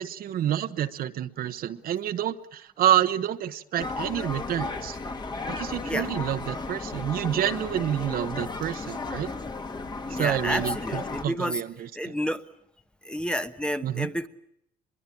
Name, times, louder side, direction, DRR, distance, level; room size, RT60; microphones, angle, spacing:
voice 1, 0.0-5.0 5.5-9.3 10.1-12.1 13.8-14.1, right 11 dB, 60° right, 11 dB, 1.1 m, -28 dB
sound 1, 3.8-11.2, left 3 dB, 25° left, 1.8 m, -34 dB
voice 2, 10.1-11.6 12.0-12.4 13.0-14.3, equal, 5° left, 10 dB, 1.1 m, -30 dB
24.5 x 22.5 x 8.5 m, 0.74 s
cardioid pair, 110°, 17 cm